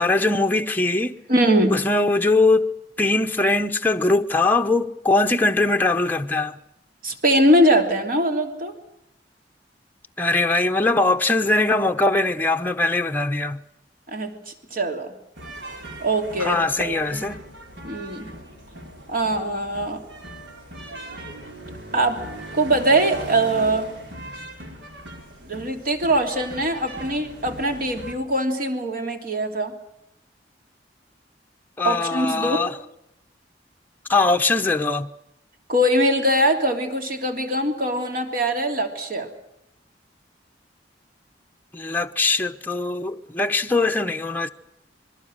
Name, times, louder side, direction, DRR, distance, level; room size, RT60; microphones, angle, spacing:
voice 1, 0.0-1.2 1.7-6.6 10.2-13.6 16.4-17.4 31.8-32.8 34.1-35.1 41.7-44.5, left 2 dB, 10° left, 0.8 m, -21 dB
voice 2, 1.3-1.8 7.0-8.7 14.1-15.1 16.0-17.2 17.8-18.3 19.1-20.0 21.9-22.2 22.5-23.9 25.4-29.7 31.8-32.6 35.7-39.3, right 1 dB, 50° right, 3.1 m, -22 dB
sound 1, 15.4-28.1, right 1 dB, 75° right, 4.4 m, -39 dB
27.5 x 22.0 x 6.5 m
head